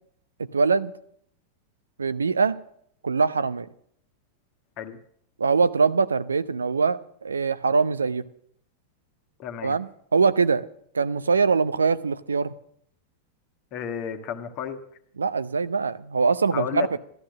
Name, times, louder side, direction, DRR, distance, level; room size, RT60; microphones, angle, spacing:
voice 1, 0.4-0.9 2.0-2.6 3.0-3.7 5.4-8.2 9.6-10.6 10.9-12.5 15.2-16.9, right 5 dB, 75° right, 15 dB, 0.5 m, -23 dB
voice 2, 9.4-9.8 13.7-14.8 16.5-17.0, left 8 dB, 40° left, 7 dB, 1.4 m, -32 dB
13.0 x 13.0 x 6.3 m, 0.67 s
figure-of-eight pair, 90°, 0 cm